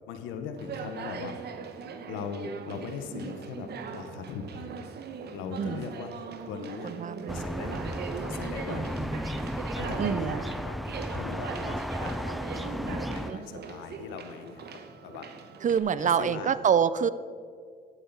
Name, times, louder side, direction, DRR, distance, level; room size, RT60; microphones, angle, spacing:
voice 1, 0.1-1.4 2.1-4.7 5.3-6.1 6.5-6.9 7.3-7.8 8.3-9.1 9.7-10.8 11.1-15.3 16.0-16.6, left 6 dB, 80° left, 7 dB, 1.1 m, -39 dB
Conversation, 0.6-15.8, right 5 dB, 60° right, 1.1 m, -40 dB
voice 2, 5.6-5.9 6.8-7.4 7.7-8.0 8.7-9.2 10.0-10.4 13.3-13.4 15.6-17.1, right 7 dB, 40° right, 16 dB, 0.6 m, -27 dB
sound 1, 7.3-13.3, equal, ahead, 0.3 m, -34 dB
11.0 x 8.1 x 5.6 m, 2.1 s
supercardioid pair, 65°, 19 cm